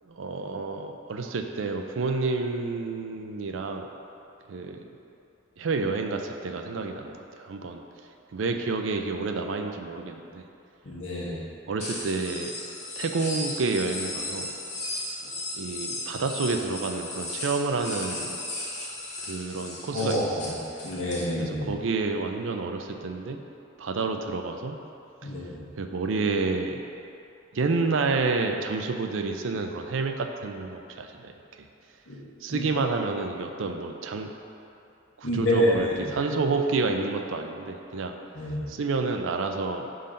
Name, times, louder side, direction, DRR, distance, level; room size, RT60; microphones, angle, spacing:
voice 1, 0.0-3.9 4.5-4.9 5.6-7.8 8.3-10.5 11.7-12.5 13.0-14.5 15.5-18.4 19.2-20.6 21.4-23.4 23.8-24.8 25.2-25.3 25.8-26.8 27.5-31.7 32.4-34.3 35.2-38.1 38.4-39.9, right 4 dB, 85° right, 5 dB, 0.5 m, -29 dB
voice 2, 10.8-11.4 19.9-20.5 20.8-21.7 25.2-25.7 32.1-32.2 32.5-32.6 35.2-36.1 38.3-38.6, left 1 dB, 85° left, -6 dB, 1.4 m, -27 dB
sound 1, 11.8-21.2, left 2 dB, 35° left, 1.1 m, -36 dB
5.6 x 3.9 x 5.1 m, 2.7 s
head